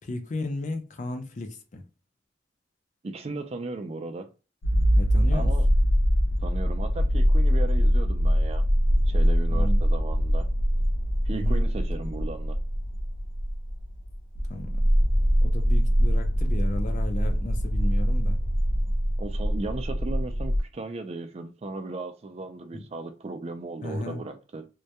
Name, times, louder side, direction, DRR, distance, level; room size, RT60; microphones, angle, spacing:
voice 1, 0.0-1.8 4.9-5.5 9.5-9.8 11.3-11.6 14.5-14.8 15.4-18.4 22.7-22.8 23.8-24.2, left 2 dB, 40° left, 0.4 m, -34 dB
voice 2, 3.0-4.3 5.3-5.6 6.4-8.7 9.1-10.5 11.3-12.6 19.2-24.7, right 3 dB, 30° right, 0.3 m, -36 dB
sound 1, 4.6-20.6, equal, 85° left, 0.5 m, -23 dB
2.2 x 2.1 x 2.8 m
head